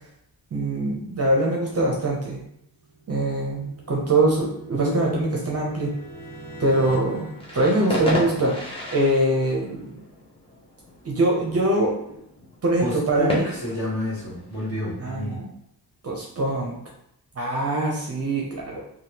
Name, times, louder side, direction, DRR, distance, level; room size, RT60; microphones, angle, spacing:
voice 1, 0.5-2.4 3.1-5.9 6.6-8.5 8.9-9.9 11.0-12.2 12.6-13.4 15.0-15.5 16.0-16.8 17.4-18.8, right 1 dB, 35° right, -2 dB, 0.6 m, -23 dB
sound 1, 2.8-8.7, right 2 dB, 90° left, 1.1 m, -42 dB
sound 2, 7.4-15.0, left 1 dB, 15° left, 0.6 m, -33 dB
voice 2, 12.8-15.4, left 1 dB, 40° left, -7 dB, 1.5 m, -29 dB
3.4 x 2.3 x 2.8 m, 0.73 s
wide cardioid pair, 170°, 42 cm